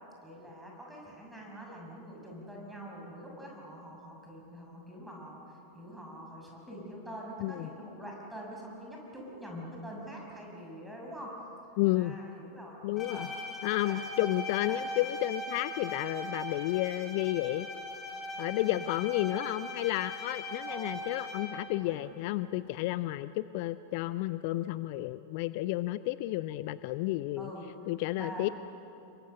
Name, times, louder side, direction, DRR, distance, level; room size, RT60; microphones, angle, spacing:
voice 1, 0.2-11.4 11.9-13.3 13.8-14.4 14.7-14.8 18.5-18.9 20.7-21.1 21.8-22.0 27.4-28.5, equal, 5° right, -2 dB, 6.3 m, -45 dB
voice 2, 11.8-12.2 12.8-13.3 13.6-17.7 18.4-27.5 27.9-28.5, left 17 dB, 45° left, 16 dB, 0.4 m, -31 dB
Bowed string instrument, 13.0-21.7, left 1 dB, 20° left, 5.3 m, -40 dB
28.0 x 23.0 x 6.8 m, 3.0 s
figure-of-eight pair, 90°, 0 cm